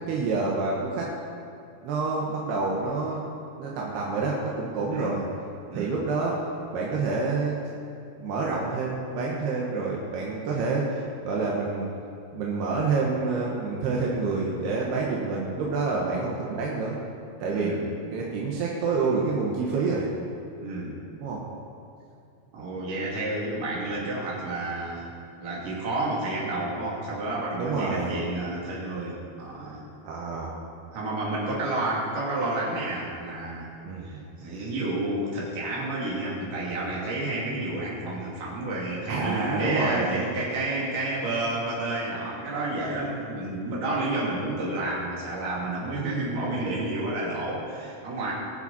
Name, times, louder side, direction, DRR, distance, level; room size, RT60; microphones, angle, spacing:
voice 1, 0.1-1.1 1.8-3.2 3.5-5.2 5.7-6.4 6.7-7.6 8.2-11.9 12.3-17.0 17.4-17.8 18.1-20.1 21.2-21.4 22.6-22.7 27.5-28.2 30.0-30.5 33.8-34.2 39.1-40.2, right 4 dB, 80° right, -3 dB, 3.3 m, -28 dB
voice 2, 17.5-17.9 20.6-21.0 22.5-25.1 25.4-29.8 30.9-33.7 34.0-48.3, right 2 dB, 55° right, -5 dB, 4.1 m, -30 dB
22.0 x 7.5 x 4.2 m, 2.5 s
omnidirectional pair, 4.6 m